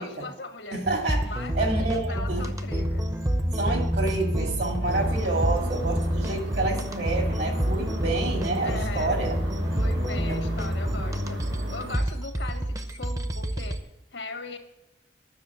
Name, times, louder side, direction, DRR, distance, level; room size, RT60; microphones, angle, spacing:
voice 1, 0.0-0.8 1.2-3.1 8.6-9.2 9.8-14.6, left 3 dB, 85° left, 6 dB, 1.5 m, -39 dB
voice 2, 0.7-2.5 3.5-9.4 10.3-10.4, right 2 dB, 65° right, 2 dB, 2.3 m, -29 dB
sound 1, 0.8-13.8, equal, 20° right, 0.7 m, -28 dB
sound 2, 4.8-12.0, left 1 dB, 90° right, 1.8 m, -38 dB
10.5 x 6.4 x 7.4 m, 0.90 s
head